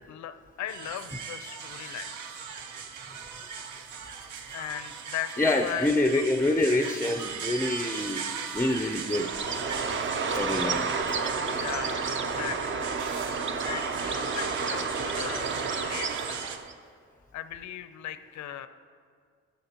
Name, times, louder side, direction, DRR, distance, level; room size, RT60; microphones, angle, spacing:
voice 1, 0.0-2.1 4.5-6.1 11.5-12.9 13.6-16.5 17.3-18.7, left 11 dB, 65° left, 11 dB, 0.6 m, -38 dB
sound 1, 0.7-16.6, right 6 dB, 75° right, 0.8 m, -38 dB
voice 2, 5.4-8.3 8.5-9.3 10.3-10.9, left 2 dB, 10° left, 7 dB, 0.5 m, -26 dB
Bird, 9.0-16.7, right 4 dB, 40° right, 0.7 m, -31 dB
12.5 x 11.5 x 2.9 m, 2.1 s
cardioid pair, 90°, 30 cm